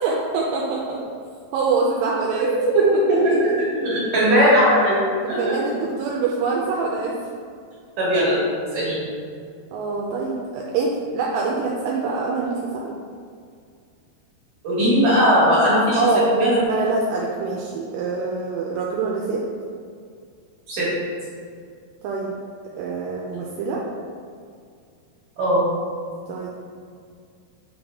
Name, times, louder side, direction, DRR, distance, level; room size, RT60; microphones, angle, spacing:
voice 1, 0.0-1.2 1.5-3.4 5.2-7.2 9.7-13.0 16.0-16.3 16.7-19.4 22.0-22.4 22.8-23.8 26.3-26.5, right 4 dB, 85° right, -3 dB, 2.5 m, -25 dB
voice 2, 2.6-5.0 5.3-5.5 8.0-8.4 8.7-9.1 14.6-16.7 20.7-20.9 25.4-25.6, equal, 60° right, -10 dB, 2.5 m, -18 dB
8.4 x 3.9 x 3.5 m, 2.2 s
omnidirectional pair, 5.2 m